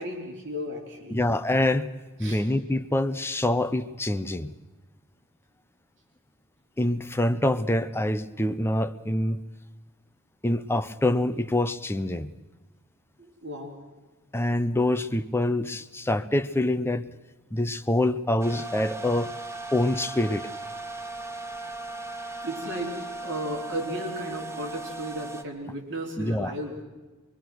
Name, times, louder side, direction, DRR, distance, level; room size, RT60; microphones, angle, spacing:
voice 1, 0.0-1.2 2.2-2.4 13.2-13.8 22.4-26.8, equal, 55° right, 0 dB, 3.8 m, -34 dB
voice 2, 1.1-1.9 2.2-4.5 6.8-9.4 10.4-12.3 14.3-17.1 17.5-19.3 19.7-20.4 26.2-26.5, left 1 dB, 10° left, 9 dB, 0.6 m, -25 dB
sound 1, 18.4-25.4, right 2 dB, 10° right, 1.0 m, -37 dB
23.0 x 22.5 x 6.3 m, 1.2 s
head